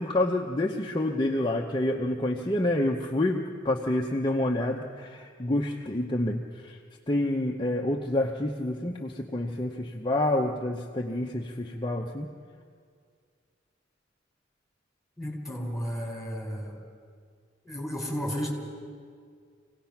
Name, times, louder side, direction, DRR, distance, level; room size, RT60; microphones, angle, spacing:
voice 1, 0.0-6.8 7.1-12.3, left 1 dB, 25° left, 0 dB, 0.8 m, -28 dB
voice 2, 15.2-16.8 17.7-18.5, equal, ahead, -2 dB, 3.8 m, -33 dB
26.0 x 17.5 x 5.8 m, 2.1 s
head